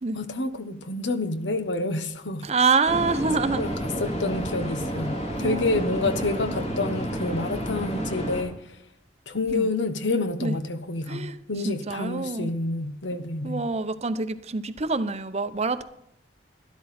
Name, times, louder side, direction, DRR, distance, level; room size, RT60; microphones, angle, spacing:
voice 1, 0.1-2.5 3.6-8.6 9.3-13.6, left 2 dB, 75° left, 10 dB, 1.1 m, -28 dB
voice 2, 2.4-3.6 5.4-5.8 9.5-9.7 10.4-10.6 11.1-11.4 11.6-12.5 13.4-15.8, right 4 dB, 35° right, 12 dB, 0.7 m, -26 dB
sound 1, 2.9-8.4, equal, 35° left, 2.4 m, -30 dB
12.5 x 12.0 x 4.2 m, 0.78 s
head